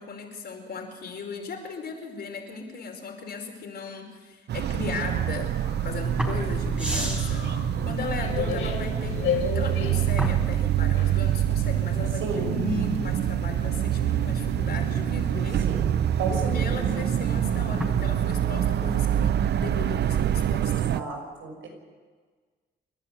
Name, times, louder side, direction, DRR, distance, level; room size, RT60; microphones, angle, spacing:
voice 1, 0.0-9.2 9.5-15.6 16.3-20.9, left 4 dB, 55° left, 2 dB, 5.0 m, -37 dB
Ambient Street Noise, 4.5-21.0, right 11 dB, 55° right, 0.6 m, -26 dB
sound 1, 5.6-12.1, left 7 dB, 85° left, 3.5 m, -34 dB
sound 2, 6.0-20.6, left 2 dB, 5° right, 4.0 m, -36 dB
voice 2, 12.2-12.6 15.6-15.9 16.2-17.1 20.7-21.7, right 4 dB, 85° right, 3 dB, 5.8 m, -33 dB
29.0 x 11.0 x 8.2 m, 1.5 s
cardioid pair, 90°, 20 cm